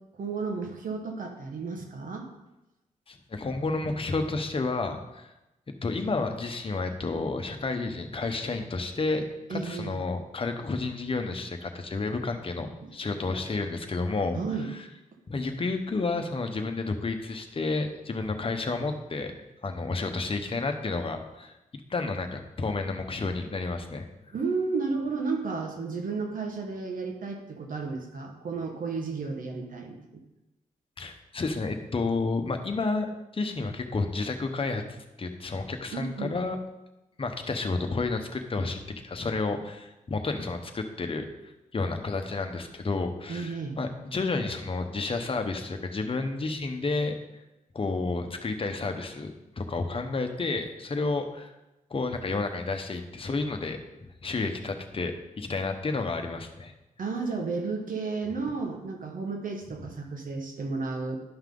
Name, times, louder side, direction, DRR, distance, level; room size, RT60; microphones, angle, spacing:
voice 1, 0.1-2.3 9.5-10.0 12.8-12.9 14.3-14.7 24.3-30.2 35.9-36.4 43.3-43.7 57.0-61.2, right 4 dB, 75° right, 3 dB, 1.5 m, -33 dB
voice 2, 3.1-5.3 5.8-9.2 9.5-14.4 15.3-19.3 19.6-21.5 21.9-24.1 31.0-34.9 35.2-36.6 37.2-41.3 41.7-47.1 47.7-51.5 51.9-56.7, left 3 dB, 40° left, 5 dB, 1.1 m, -31 dB
11.5 x 5.6 x 3.9 m, 0.97 s
wide cardioid pair, 90°, 14 cm